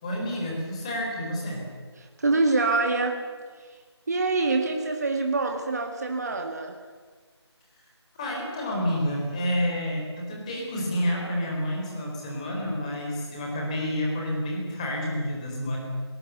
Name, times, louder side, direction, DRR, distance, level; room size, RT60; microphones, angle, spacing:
voice 1, 0.0-1.7 8.2-15.8, equal, 15° left, -1 dB, 4.3 m, -29 dB
voice 2, 2.0-3.2 4.1-6.8, right 3 dB, 40° right, 4 dB, 2.0 m, -25 dB
26.5 x 19.5 x 8.1 m, 1.5 s
figure-of-eight pair, 170°, 14 cm